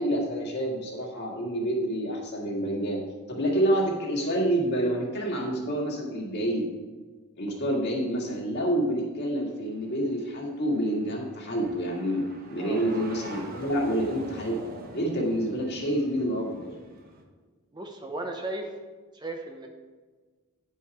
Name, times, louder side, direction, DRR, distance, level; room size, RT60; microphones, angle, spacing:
voice 1, 0.0-3.0 3.3-6.7 7.4-14.6 14.9-16.7, right 1 dB, 50° left, -1 dB, 1.9 m, -28 dB
sound 1, 9.5-17.2, right 1 dB, 40° right, 1.0 m, -45 dB
voice 2, 17.7-18.7 19.1-19.7, right 2 dB, 20° right, 3 dB, 0.7 m, -35 dB
9.7 x 5.7 x 4.8 m, 1.4 s
head